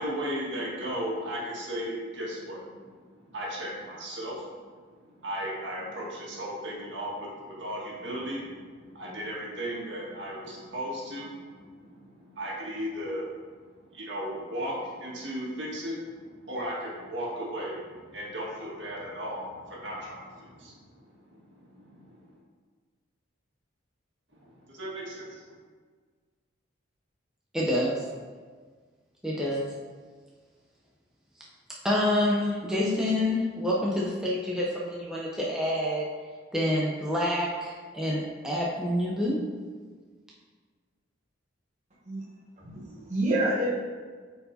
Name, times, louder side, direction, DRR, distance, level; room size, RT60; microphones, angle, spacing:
voice 1, 0.0-2.8 3.2-4.5 5.0-13.3 13.9-20.8 21.4-22.2 24.4-25.5, equal, 65° right, -5 dB, 1.7 m, -36 dB
voice 2, 27.5-28.0 29.2-29.6 31.8-36.1 36.5-39.4, left 1 dB, 5° right, -5 dB, 0.6 m, -27 dB
voice 3, 42.6-43.7, right 1 dB, 35° right, -6 dB, 1.0 m, -28 dB
7.7 x 4.6 x 2.7 m, 1.5 s
head